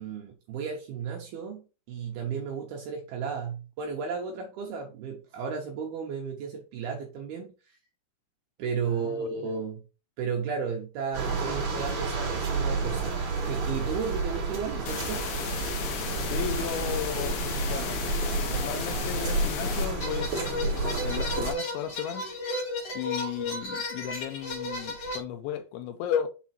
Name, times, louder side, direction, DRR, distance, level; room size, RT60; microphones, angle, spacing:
voice 1, 0.0-7.8 8.6-9.8 10.2-15.2, right 6 dB, 75° right, 2.4 m, -34 dB
voice 2, 8.9-9.5 16.3-18.0 18.5-20.3 20.6-22.3 22.9-26.3, left 9 dB, 85° left, 2.9 m, -35 dB
sound 1, 11.1-21.5, right 3 dB, 45° right, 2.9 m, -30 dB
sound 2, 14.9-19.9, left 6 dB, 70° left, 2.7 m, -34 dB
sound 3, 20.0-25.2, left 2 dB, 45° left, 2.2 m, -34 dB
7.3 x 3.7 x 4.3 m
omnidirectional pair, 5.6 m